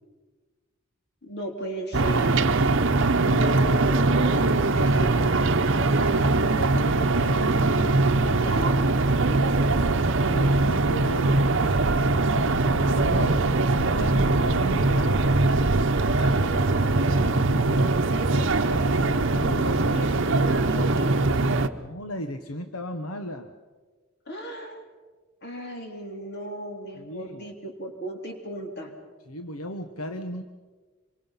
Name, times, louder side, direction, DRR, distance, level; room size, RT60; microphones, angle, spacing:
voice 1, 1.2-2.4 3.1-5.3 5.8-8.9 16.2-21.4 24.2-24.8 25.4-28.9, equal, 50° left, 2 dB, 3.4 m, -37 dB
sound 1, 1.9-21.7, right 2 dB, 60° right, 0.9 m, -22 dB
voice 2, 10.3-11.9 12.2-15.3 21.8-23.5 27.0-27.5 29.3-30.4, equal, 80° left, 7 dB, 1.2 m, -35 dB
26.0 x 24.0 x 5.8 m, 1.4 s
head